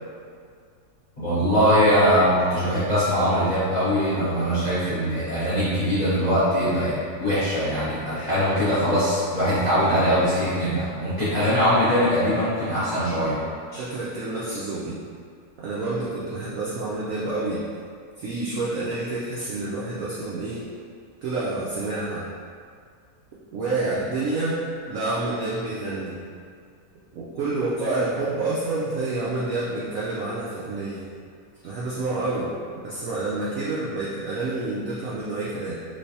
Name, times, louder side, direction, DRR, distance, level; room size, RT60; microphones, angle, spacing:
voice 1, 1.2-13.4, equal, 40° left, -13 dB, 0.6 m, -22 dB
voice 2, 13.7-15.0 15.6-17.6 18.2-20.6 21.2-22.2 23.5-24.6 24.9-26.2 27.1-31.0 31.6-32.5 32.8-35.8, right 2 dB, 85° right, -7 dB, 0.7 m, -28 dB
3.2 x 3.0 x 2.7 m, 2.2 s
omnidirectional pair, 2.0 m